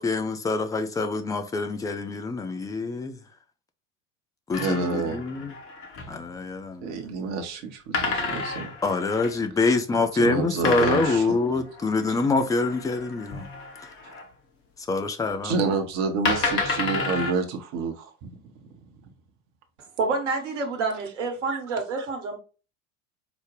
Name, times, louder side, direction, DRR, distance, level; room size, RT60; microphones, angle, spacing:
voice 1, 0.0-3.1 4.5-5.5 6.1-7.0 8.8-13.5 14.9-15.5, left 3 dB, 10° left, 0.4 m, -25 dB
sound 1, 4.5-6.2 7.9-9.4 10.6-14.3 15.4-15.5 16.2-17.3, left 3 dB, 35° left, 1.0 m, -31 dB
voice 2, 4.6-5.2 6.8-8.7 10.2-11.6 15.4-18.1 21.5-21.6, right 4 dB, 45° right, 0.8 m, -28 dB
voice 3, 20.0-22.4, right 4 dB, 65° right, 1.2 m, -28 dB
5.0 x 2.1 x 3.1 m
figure-of-eight pair, 70°, 38 cm